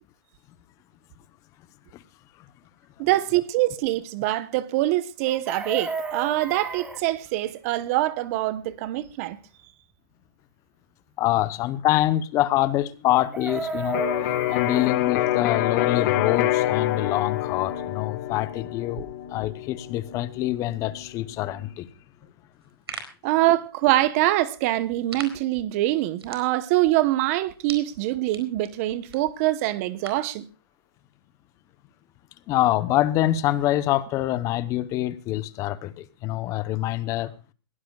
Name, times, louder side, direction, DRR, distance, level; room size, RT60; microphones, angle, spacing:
voice 1, 3.0-9.4 23.2-30.5, right 16 dB, 35° right, 0.9 m, -24 dB
Chicken rooster, 5.2-7.0 13.1-14.9 17.2-17.3 17.5-17.8, right 3 dB, 5° right, 1.3 m, -33 dB
voice 2, 11.2-14.0 14.5-21.9 32.5-37.3, left 14 dB, 25° left, 0.8 m, -25 dB
Electric guitar, 13.9-21.7, left 13 dB, 40° left, 1.8 m, -27 dB
sound 1, 22.5-30.4, right 5 dB, 90° right, 4.5 m, -44 dB
22.0 x 16.0 x 2.3 m
hypercardioid pair, 145°, 13 cm